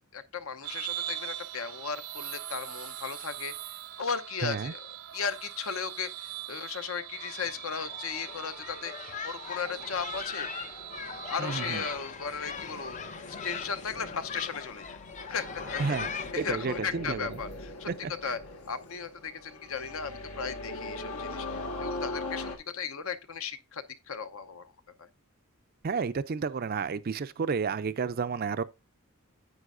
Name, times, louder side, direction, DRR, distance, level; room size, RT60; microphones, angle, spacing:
voice 1, 0.1-3.5 4.0-4.8 5.1-10.5 11.3-13.0 13.2-15.0 15.3-17.9 18.2-18.4 18.7-24.7 25.0-25.1, left 6 dB, 65° left, 0.8 m, -36 dB
sound 1, 0.6-12.0, right 12 dB, 90° right, 0.8 m, -41 dB
voice 2, 4.4-4.7 11.4-11.8 15.8-16.1 16.3-17.4 17.9-18.1 25.8-28.6, right 5 dB, 40° right, 0.4 m, -31 dB
sound 2, 7.1-16.3, left 6 dB, 35° left, 0.5 m, -40 dB
sound 3, 9.4-22.6, left 2 dB, 80° left, 1.6 m, -41 dB
9.6 x 8.3 x 2.6 m
head